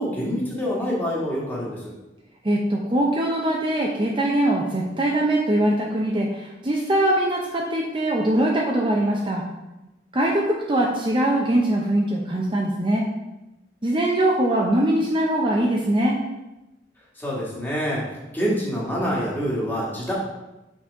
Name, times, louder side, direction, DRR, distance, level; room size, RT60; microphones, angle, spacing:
voice 1, 0.0-1.9 17.2-18.0 18.3-20.1, equal, 10° left, -5 dB, 1.7 m, -26 dB
voice 2, 2.4-9.4 10.1-13.0 13.8-16.2, right 1 dB, 25° right, -2 dB, 0.6 m, -22 dB
6.0 x 4.1 x 4.6 m, 0.99 s
head